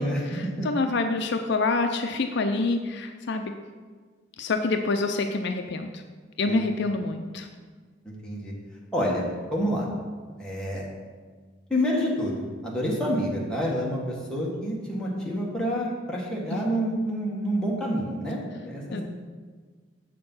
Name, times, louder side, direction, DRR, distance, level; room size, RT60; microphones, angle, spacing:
voice 1, 0.0-3.4 4.4-6.0 6.4-7.5 18.9-19.0, left 3 dB, 60° left, 6 dB, 0.5 m, -27 dB
voice 2, 8.1-8.5 8.9-9.3 9.5-9.8 10.4-10.8 11.7-19.0, equal, 5° left, -4 dB, 1.8 m, -28 dB
7.6 x 6.7 x 5.5 m, 1.5 s
head